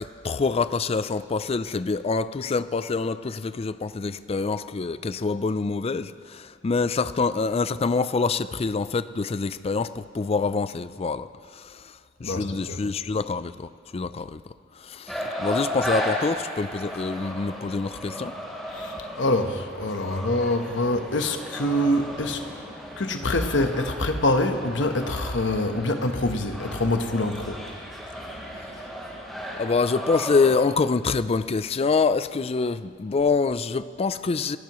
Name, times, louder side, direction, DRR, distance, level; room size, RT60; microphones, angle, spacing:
voice 1, 0.0-11.3 11.6-11.8 12.2-14.4 14.8-18.3 29.6-34.6, left 4 dB, 35° left, 14 dB, 0.4 m, -26 dB
voice 2, 12.2-12.8 18.7-22.5 23.0-27.7, left 1 dB, 75° left, 6 dB, 1.1 m, -25 dB
sound 1, 15.1-30.6, equal, ahead, 3.6 m, -35 dB
29.5 x 12.0 x 3.1 m, 2.1 s
head